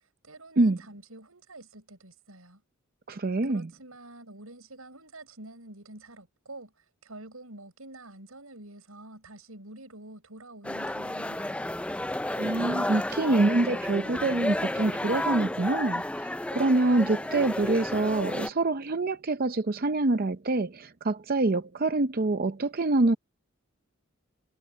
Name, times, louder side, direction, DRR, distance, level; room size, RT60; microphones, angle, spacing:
voice 1, 0.2-2.6 3.4-11.8, right 2 dB, 90° right, 7.2 m, -47 dB
voice 2, 3.1-3.7 12.3-23.1, right 2 dB, 45° right, 0.6 m, -26 dB
sound 1, 10.6-18.5, left 1 dB, 5° left, 0.3 m, -32 dB
head